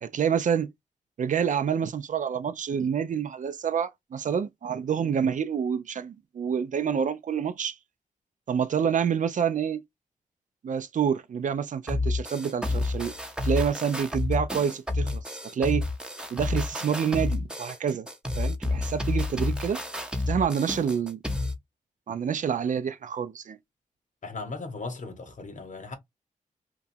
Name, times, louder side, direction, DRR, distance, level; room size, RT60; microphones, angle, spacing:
voice 1, 0.0-0.7 1.2-7.8 8.5-9.8 10.6-13.1 13.4-15.2 15.5-15.9 16.3-18.1 18.4-19.8 20.3-21.2 22.1-23.6, right 7 dB, 65° right, 0.4 m, -27 dB
sound 1, 11.9-21.6, left 2 dB, 5° right, 0.7 m, -30 dB
voice 2, 24.2-25.9, left 3 dB, 65° left, 1.0 m, -37 dB
3.0 x 2.3 x 2.6 m
cardioid pair, 65°, 14 cm